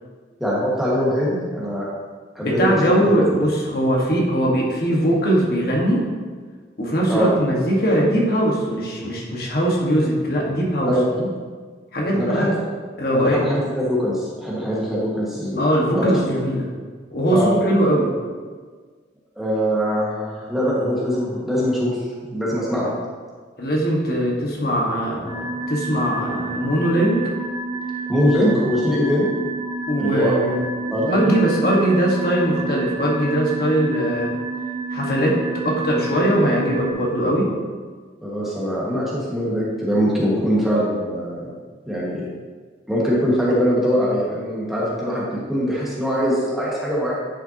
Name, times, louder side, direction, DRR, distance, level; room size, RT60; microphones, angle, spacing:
voice 1, 0.4-1.9 2.3-3.3 7.1-7.3 10.8-11.1 12.1-12.6 13.1-15.6 15.9-16.1 17.3-17.5 19.3-22.9 28.1-29.3 29.9-30.4 30.9-31.4 38.2-41.5 41.8-42.3 42.9-47.2, equal, ahead, -7 dB, 1.6 m, -22 dB
voice 2, 2.4-6.0 6.8-10.9 11.2-11.3 11.9-12.5 13.0-13.5 15.6-16.7 17.1-18.1 23.6-27.2 28.4-28.5 29.9-30.6 31.1-34.3 34.9-37.5, right 1 dB, 55° left, -3 dB, 1.4 m, -20 dB
sound 1, 25.3-36.9, right 3 dB, 30° right, 1.8 m, -29 dB
10.0 x 5.6 x 2.8 m, 1.5 s
head